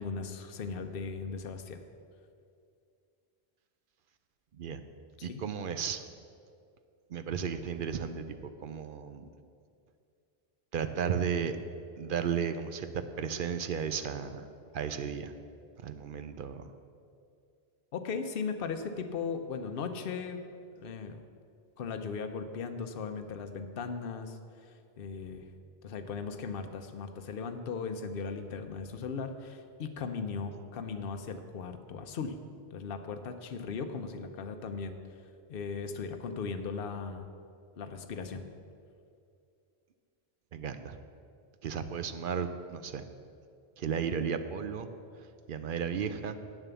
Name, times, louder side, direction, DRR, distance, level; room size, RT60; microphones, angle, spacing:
voice 1, 0.0-1.8 5.2-5.4 17.9-20.4 20.8-21.2 21.8-24.4 24.7-25.4 25.8-32.4 32.7-35.0 35.5-37.3 37.8-38.4, left 5 dB, 65° left, 7 dB, 0.9 m, -37 dB
voice 2, 5.2-6.0 7.1-9.3 10.7-11.6 12.0-14.5 14.7-15.3 15.8-16.6 40.5-41.0 41.6-43.1 43.8-44.9 45.2-46.4, right 7 dB, 60° right, 9 dB, 0.7 m, -34 dB
9.2 x 7.2 x 6.9 m, 2.4 s
omnidirectional pair, 1.1 m